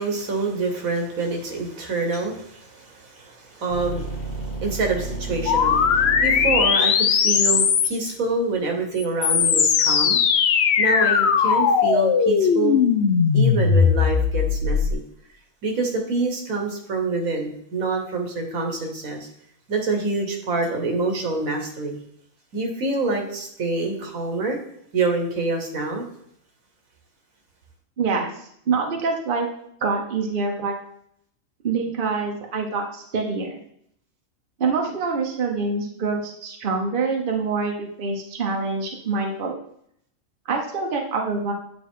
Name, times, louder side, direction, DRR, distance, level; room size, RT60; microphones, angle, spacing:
voice 1, 0.0-10.2 10.8-12.8 13.3-15.0 15.6-19.3 19.7-22.0 22.5-24.6 24.9-26.1, right 3 dB, 80° right, 3 dB, 1.6 m, -26 dB
sound 1, 3.7-8.8, right 2 dB, 80° left, 2.2 m, -33 dB
sound 2, 5.5-8.1 9.0-14.9, left 6 dB, 60° left, 0.8 m, -19 dB
voice 2, 28.0-28.3 28.7-29.5 29.8-30.8 31.6-33.6 34.6-39.6 40.5-41.5, right 4 dB, 45° right, 1 dB, 1.1 m, -25 dB
9.3 x 3.7 x 3.6 m, 0.69 s
omnidirectional pair, 1.4 m